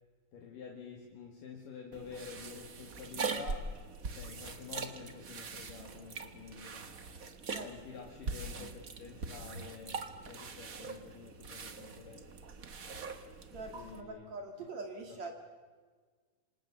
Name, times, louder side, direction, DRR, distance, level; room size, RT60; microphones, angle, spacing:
voice 1, 0.3-3.8 4.1-6.9 7.5-12.4 13.5-14.3 14.6-14.7 15.1-15.3, left 6 dB, 65° left, 1 dB, 3.7 m, -49 dB
sound 1, 1.9-14.0, right 4 dB, 80° right, 0.7 m, -42 dB
voice 2, 13.5-15.3, right 3 dB, 50° right, 4 dB, 3.2 m, -43 dB
27.5 x 26.0 x 7.1 m, 1.5 s
omnidirectional pair, 4.2 m